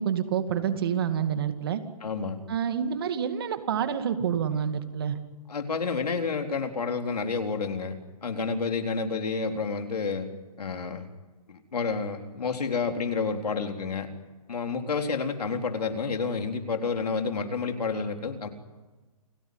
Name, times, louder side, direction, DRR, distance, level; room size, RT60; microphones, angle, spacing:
voice 1, 0.0-1.8 2.5-5.2, right 8 dB, 35° right, 8 dB, 2.2 m, -28 dB
voice 2, 2.0-2.4 5.5-10.3 10.6-11.1 11.5-14.1 14.5-18.5, left 5 dB, 80° left, 4 dB, 3.9 m, -30 dB
29.5 x 17.5 x 9.6 m, 1.2 s
hypercardioid pair, 170°, 20 cm